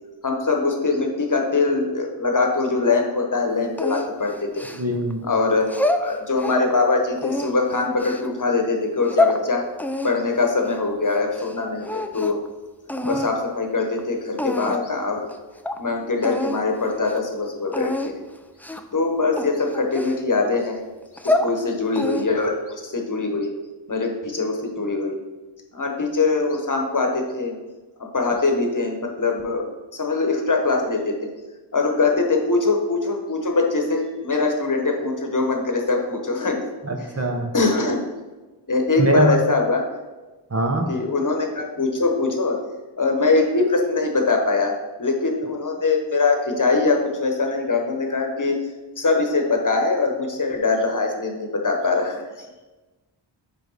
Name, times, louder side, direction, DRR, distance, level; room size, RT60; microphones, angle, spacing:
voice 1, 0.2-4.6 5.2-5.6 5.9-9.6 10.0-12.4 13.1-15.3 15.8-18.1 18.9-20.8 21.2-23.5 23.9-25.2 25.7-27.5 28.1-31.3 31.7-36.6 37.0-37.1 37.5-38.0 38.7-39.8 40.9-42.5 43.0-44.7 45.0-48.5 49.0-52.2, left 3 dB, 40° left, 2 dB, 1.1 m, -22 dB
sound 1, 3.8-5.1 5.6-6.7 7.2-8.3 8.8-9.4 9.8-11.6 11.8-12.5 12.9-13.3 14.0-14.1 14.4-14.9 15.3-15.4 15.6-15.8 16.2-16.6 16.9-17.2 17.7-18.1 18.6-18.9 19.4-20.5 21.0-21.5 21.9-22.5, left 2 dB, 5° left, 0.3 m, -26 dB
voice 2, 4.7-5.2 36.8-37.5 39.0-39.4 40.5-40.9, right 2 dB, 35° right, 3 dB, 0.9 m, -22 dB
9.8 x 3.3 x 4.0 m, 1.2 s
wide cardioid pair, 70°, 46 cm